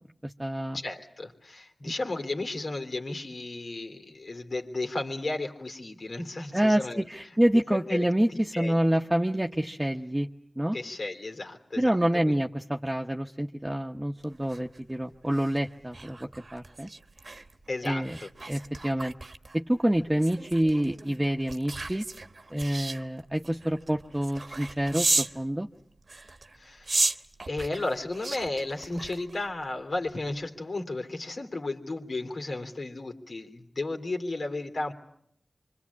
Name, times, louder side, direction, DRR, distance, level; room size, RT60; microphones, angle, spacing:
voice 1, 0.2-0.8 6.5-10.3 10.6-10.8 11.8-16.2 16.5-16.9 17.8-18.2 18.5-19.1 19.5-22.0 22.5-25.7, right 1 dB, 15° right, 2 dB, 1.0 m, -27 dB
voice 2, 0.7-7.0 7.5-9.0 10.7-12.4 17.7-18.3 26.5-27.0 27.5-34.9, left 2 dB, 70° left, 5 dB, 3.1 m, -34 dB
sound 1, 14.2-25.4 26.0-29.7 30.1-30.3, right 3 dB, 60° right, 1.1 m, -35 dB
26.0 x 24.0 x 8.5 m, 0.70 s
cardioid pair, 45°, 0 cm